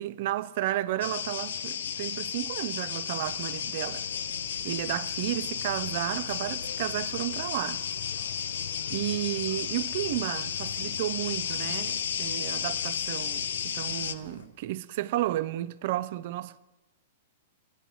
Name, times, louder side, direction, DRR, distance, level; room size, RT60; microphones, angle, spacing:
voice 1, 0.0-4.0 4.6-7.8 8.9-16.6, right 14 dB, 55° right, 0.4 m, -32 dB
sound 1, 1.0-14.1, left 8 dB, 75° left, 0.5 m, -33 dB
sound 2, 3.1-14.5, left 2 dB, 90° left, 1.1 m, -47 dB
9.4 x 5.9 x 7.0 m
hypercardioid pair, 115°, 0 cm